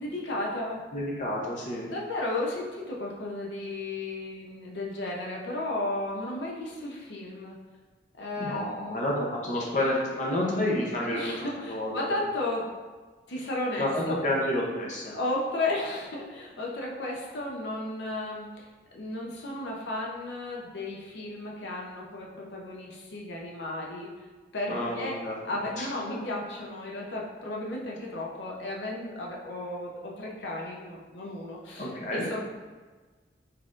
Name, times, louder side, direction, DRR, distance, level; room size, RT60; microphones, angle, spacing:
voice 1, 0.0-0.8 1.9-7.6 8.2-9.0 11.1-12.7 13.3-14.2 15.1-18.7 18.9-24.1 24.5-25.2 25.4-32.4, left 2 dB, 80° left, -2 dB, 0.7 m, -34 dB
voice 2, 0.9-1.8 8.4-11.4 11.7-12.1 13.8-15.1 24.7-25.4 25.8-25.9 31.8-32.4, left 1 dB, 40° left, -3 dB, 0.7 m, -29 dB
4.2 x 4.1 x 2.5 m, 1.4 s
head